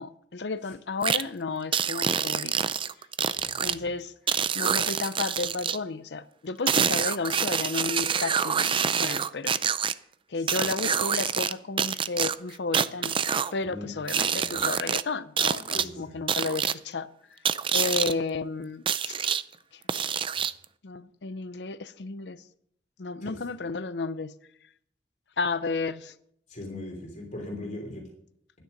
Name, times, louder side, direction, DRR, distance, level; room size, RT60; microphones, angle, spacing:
voice 1, 0.0-2.5 3.6-4.1 4.5-9.6 10.3-13.2 13.5-17.1 17.7-19.2 20.8-22.4 23.0-24.3 25.4-26.1, left 4 dB, 75° left, 0.7 m, -32 dB
sound 1, 1.0-1.2 1.7-3.7 4.3-5.8 6.7-9.9 10.5-11.5 11.8-13.5 14.1-15.0 15.4-15.8 16.3-16.7 17.4-18.1 18.9-19.4 19.9-20.6, right 7 dB, 30° right, 0.4 m, -26 dB
voice 2, 3.4-3.9 10.3-10.5 13.7-14.6 15.7-16.2 23.2-23.4 26.5-28.0, left 2 dB, 45° left, 3.0 m, -40 dB
12.0 x 10.0 x 5.3 m
head